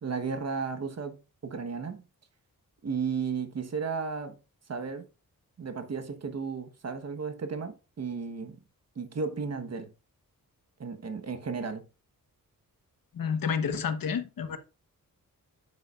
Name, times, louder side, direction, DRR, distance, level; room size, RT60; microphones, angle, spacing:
voice 1, 0.0-2.0 2.8-4.4 4.7-5.1 5.6-8.6 8.9-9.9 10.8-11.8, right 5 dB, 50° right, 1.3 m, -34 dB
voice 2, 13.1-14.6, left 6 dB, 80° left, 1.3 m, -30 dB
9.8 x 7.6 x 2.5 m
wide cardioid pair, 115°, 34 cm